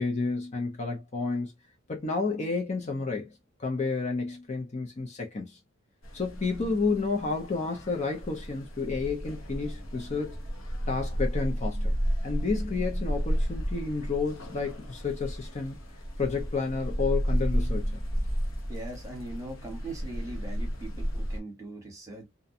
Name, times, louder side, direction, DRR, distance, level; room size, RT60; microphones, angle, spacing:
voice 1, 0.0-1.5 1.9-3.3 3.6-5.6 6.1-10.4 10.9-11.9 12.2-15.8 16.2-18.0, left 4 dB, 30° left, 0.5 m, -31 dB
sound 1, 6.0-21.4, equal, 60° left, 0.8 m, -32 dB
voice 2, 18.7-22.3, right 2 dB, 15° right, 1.0 m, -40 dB
2.4 x 2.1 x 2.6 m
head